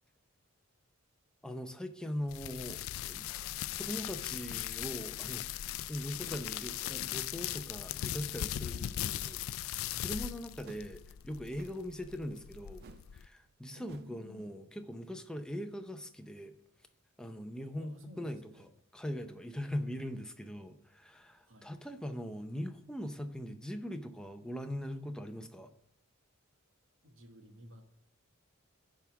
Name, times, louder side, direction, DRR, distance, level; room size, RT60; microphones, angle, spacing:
voice 1, 1.4-3.3 3.7-5.5 5.9-9.7 10.0-12.8 13.1-16.6 17.2-18.4 18.9-25.7, equal, 5° left, 0.5 m, -41 dB
sound 1, 2.3-13.3, left 12 dB, 70° left, 0.3 m, -39 dB
sound 2, 10.6-10.9 11.5-11.9 12.8-13.1 13.4-13.6 13.9-14.2, right 5 dB, 45° right, 0.3 m, -55 dB
voice 2, 13.7-14.5 17.8-18.7 19.8-19.9 21.4-21.7 27.0-27.8, equal, 60° right, 1.2 m, -54 dB
10.5 x 3.6 x 7.0 m
head